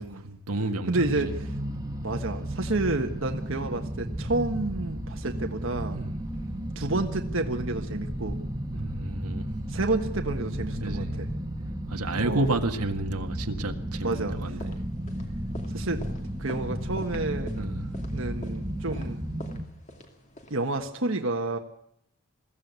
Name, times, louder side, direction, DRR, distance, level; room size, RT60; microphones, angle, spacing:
voice 1, 0.0-1.1 5.9-6.2 8.7-9.5 10.7-11.2 11.9-14.8 17.6-17.8, right 2 dB, 90° right, 5 dB, 1.8 m, -31 dB
sound 1, 0.9-19.6, right 1 dB, 15° right, 1.7 m, -33 dB
voice 2, 0.9-1.5 2.0-6.0 6.7-8.4 9.7-11.3 12.2-12.5 14.0-14.4 15.7-16.0 16.4-17.5 18.1-19.2 20.5-21.6, right 2 dB, 60° right, 4 dB, 1.5 m, -30 dB
sound 2, 14.3-20.8, left 1 dB, 30° left, 2.6 m, -48 dB
21.5 x 15.5 x 8.3 m, 0.75 s
head